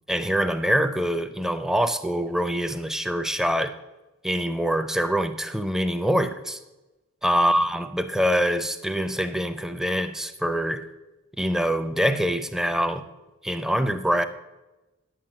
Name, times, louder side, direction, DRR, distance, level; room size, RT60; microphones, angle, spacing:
voice 1, 0.1-3.7 4.2-6.6 7.2-10.9 11.4-13.0 13.4-14.2, equal, ahead, 0.5 m, -24 dB
9.1 x 7.6 x 6.5 m
head